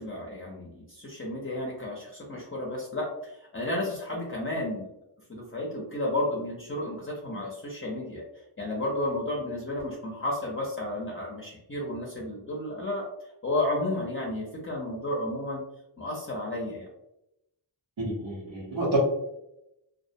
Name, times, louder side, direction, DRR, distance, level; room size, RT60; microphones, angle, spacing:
voice 1, 0.0-4.9 5.3-8.2 8.6-13.1 13.4-15.6 16.0-16.9, left 1 dB, 30° left, -3 dB, 0.5 m, -32 dB
voice 2, 18.0-19.0, right 2 dB, 85° right, -9 dB, 0.9 m, -29 dB
2.3 x 2.0 x 2.6 m, 0.84 s
wide cardioid pair, 70°, 44 cm